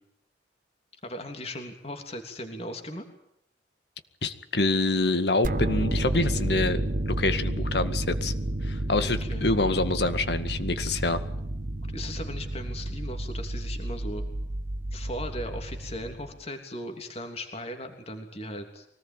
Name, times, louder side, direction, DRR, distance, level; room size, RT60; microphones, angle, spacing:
voice 1, 1.0-3.0 9.0-9.5 11.8-14.2 14.9-18.9, left 1 dB, 35° left, 5 dB, 3.2 m, -38 dB
voice 2, 4.2-6.8 7.1-8.3 8.6-11.2, left 2 dB, 65° left, 10 dB, 2.0 m, -26 dB
sound 1, 5.4-16.4, right 1 dB, 50° right, 1.0 m, -31 dB
24.5 x 19.0 x 9.2 m, 0.76 s
head